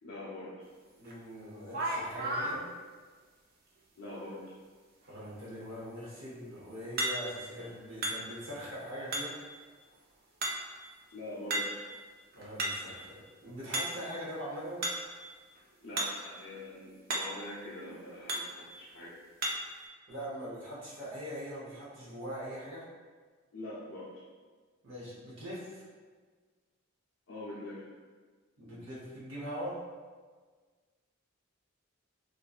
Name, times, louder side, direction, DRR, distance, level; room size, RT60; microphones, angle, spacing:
voice 1, 0.0-0.6 4.0-4.5 11.1-11.8 15.8-19.1 23.5-24.1 27.3-27.8, left 1 dB, 75° left, -9 dB, 0.5 m, -43 dB
voice 2, 1.0-2.7 5.1-9.3 12.4-14.8 20.1-22.9 24.8-25.8 28.6-29.8, equal, 65° right, -8 dB, 0.8 m, -42 dB
sound 1, 1.1-1.2 1.7-2.6 7.0-7.5 8.0-8.6 9.1-9.5 10.4-10.9 11.5-11.9 12.3-13.0 13.7-14.2 14.8-15.2 16.0-16.3 16.6-16.7 17.1-17.5 18.3-18.6 19.4-19.8, right 1 dB, 45° right, 0.3 m, -34 dB
2.5 x 2.2 x 2.4 m, 1.5 s
head